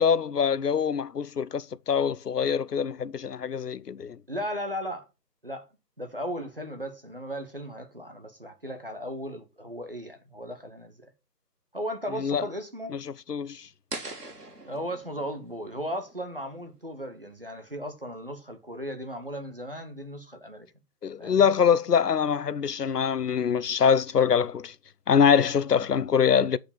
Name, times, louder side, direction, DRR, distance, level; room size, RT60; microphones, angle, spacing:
voice 1, 0.0-4.2 12.2-12.4 13.3-13.7 21.0-24.7 25.1-26.6, left 7 dB, 70° left, 0.6 m, -24 dB
voice 2, 4.3-5.1 5.4-5.7 6.0-11.1 11.7-13.0 14.7-20.7 21.2-21.5, equal, 35° right, 1.0 m, -36 dB
sound 1, 13.9-16.9, right 2 dB, 65° right, 2.6 m, -42 dB
7.8 x 4.9 x 5.1 m
figure-of-eight pair, 175°, 50 cm